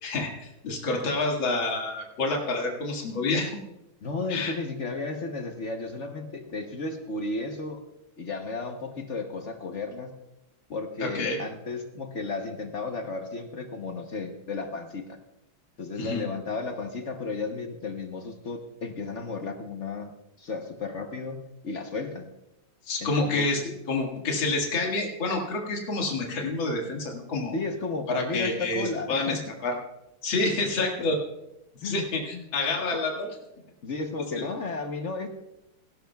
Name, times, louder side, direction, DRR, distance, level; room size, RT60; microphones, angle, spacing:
voice 1, 0.0-3.5 4.3-4.5 11.0-11.4 16.0-16.2 22.9-23.6 23.9-27.5 28.1-29.8 30.2-31.2 31.8-33.3, left 2 dB, 70° left, 0 dB, 2.6 m, -28 dB
voice 2, 4.0-7.8 8.2-10.1 10.7-15.2 15.8-20.1 20.4-22.3 23.0-23.5 27.5-29.4 30.8-30.9 31.8-32.0 32.3-32.4 32.9-33.0 33.8-35.3, left 3 dB, 50° left, 5 dB, 1.0 m, -33 dB
17.0 x 17.0 x 2.3 m, 0.89 s
omnidirectional pair, 2.2 m